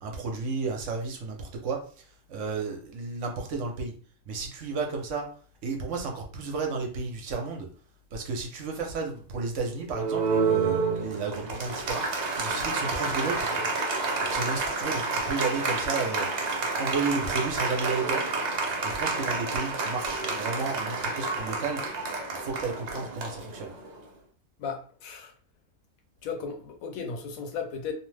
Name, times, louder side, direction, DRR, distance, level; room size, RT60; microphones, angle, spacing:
voice 1, 0.0-3.9 4.3-5.3 5.6-7.7 8.1-13.5 14.3-16.3 16.8-18.3 18.8-21.8 22.3-23.7, right 4 dB, 65° right, 0.9 m, -32 dB
Applause, 9.9-24.0, right 3 dB, 85° right, 0.3 m, -29 dB
voice 2, 24.6-25.3 26.2-27.9, left 5 dB, 75° left, 1.0 m, -35 dB
2.7 x 2.0 x 3.2 m
omnidirectional pair, 1.5 m